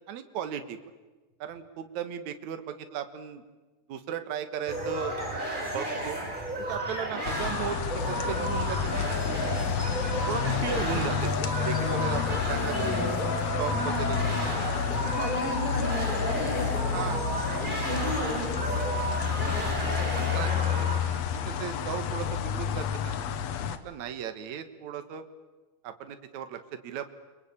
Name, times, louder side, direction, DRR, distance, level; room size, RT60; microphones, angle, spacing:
voice 1, 0.1-0.8 1.4-3.4 3.9-5.1 5.7-6.2 6.6-9.1 10.3-11.3 11.6-13.0 13.6-14.2 16.9-17.2 20.1-20.5 20.8-21.2 21.5-23.1 23.7-25.2 25.8-27.1, right 8 dB, 65° right, 9 dB, 2.7 m, -36 dB
sound 1, 4.7-21.0, right 1 dB, 15° right, 5.3 m, -33 dB
sound 2, 7.3-23.8, left 7 dB, 65° left, 2.2 m, -30 dB
voice 2, 12.6-13.3 13.7-14.2 15.1-20.8, equal, 40° left, 2 dB, 6.1 m, -36 dB
29.5 x 23.0 x 8.7 m, 1.2 s
omnidirectional pair, 3.6 m